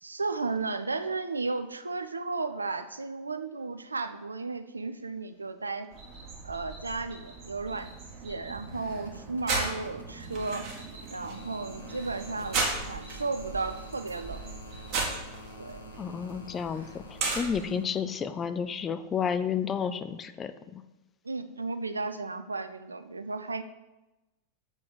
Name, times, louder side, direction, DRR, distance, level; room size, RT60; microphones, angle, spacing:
voice 1, 0.0-5.9 6.4-7.9 8.2-10.7 11.1-14.4 15.6-15.9 17.7-17.8 21.2-23.6, right 3 dB, 80° right, 10 dB, 0.5 m, -34 dB
sound 1, 5.9-17.7, right 3 dB, 40° right, 2.0 m, -36 dB
sound 2, 8.1-18.0 19.4-19.5, left 3 dB, 80° left, 1.0 m, -49 dB
voice 2, 16.0-20.8, left 7 dB, 25° left, 11 dB, 0.5 m, -31 dB
7.0 x 4.6 x 6.9 m, 1.0 s
figure-of-eight pair, 90°, 0 cm